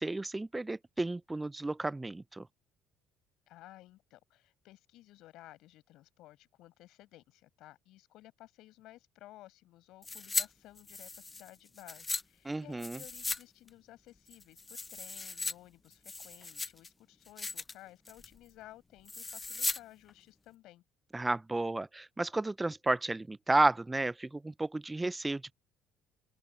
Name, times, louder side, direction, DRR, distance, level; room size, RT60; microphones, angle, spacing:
voice 1, 0.0-2.4 12.5-13.0 21.1-25.5, right 2 dB, 15° right, 0.5 m, -32 dB
voice 2, 3.5-20.8, left 16 dB, 70° left, 6.0 m, -56 dB
sound 1, 10.0-10.5 10.8-12.2 12.8-13.4 13.7-13.8 14.3-15.5 15.9-16.9 17.2-17.7 18.0-18.4 19.0-19.8 20.1-20.2, left 3 dB, 25° left, 1.0 m, -37 dB
open air
hypercardioid pair, 60°, 0 cm